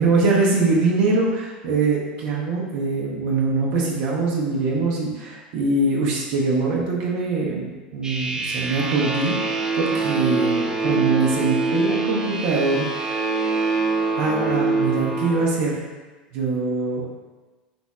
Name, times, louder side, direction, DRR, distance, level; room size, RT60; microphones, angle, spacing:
voice 1, 0.0-12.9 14.2-15.8 16.3-17.0, right 3 dB, 55° right, -3 dB, 0.7 m, -23 dB
sound 1, 8.0-15.5, right 3 dB, 15° right, 0.5 m, -24 dB
3.4 x 2.1 x 4.1 m, 1.2 s
figure-of-eight pair, 80°, 5 cm